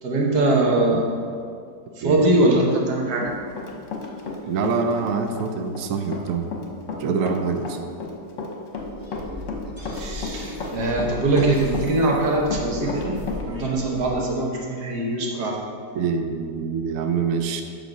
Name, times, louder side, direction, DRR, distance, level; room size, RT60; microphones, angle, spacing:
voice 1, 0.0-1.0 2.0-3.3 9.9-13.2 13.5-15.6, right 2 dB, 60° right, -1 dB, 1.7 m, -22 dB
voice 2, 2.0-2.5 4.5-6.5 7.0-7.8 15.9-17.6, right 5 dB, 75° right, 5 dB, 0.7 m, -25 dB
Run, 2.7-4.4 4.6-13.4, left 4 dB, 50° left, 1.1 m, -32 dB
sound 1, 8.7-14.1, left 1 dB, 20° right, 0.6 m, -37 dB
7.9 x 5.2 x 6.0 m, 2.3 s
omnidirectional pair, 2.1 m